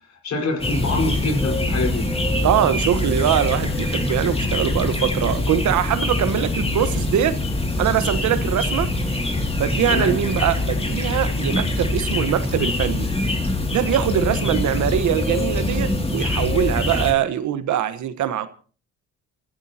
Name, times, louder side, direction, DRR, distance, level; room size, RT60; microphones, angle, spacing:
voice 1, 0.2-2.1 9.9-10.2, left 2 dB, 65° left, 5.0 m, -25 dB
sound 1, 0.6-17.1, left 2 dB, 20° left, 2.6 m, -24 dB
voice 2, 2.4-7.4 7.8-8.9 9.6-13.1 13.7-18.5, right 10 dB, 75° right, 1.3 m, -22 dB
29.5 x 15.0 x 2.9 m
cardioid pair, 90°, 30 cm